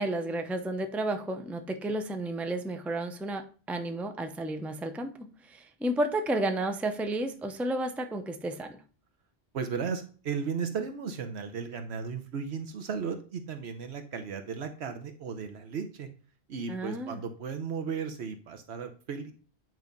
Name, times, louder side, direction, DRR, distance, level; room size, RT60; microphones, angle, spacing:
voice 1, 0.0-8.8 16.7-17.2, right 1 dB, ahead, 0.5 m, -32 dB
voice 2, 9.5-16.1 16.5-19.3, right 6 dB, 80° right, 1.1 m, -35 dB
9.3 x 3.1 x 5.2 m
omnidirectional pair, 1.1 m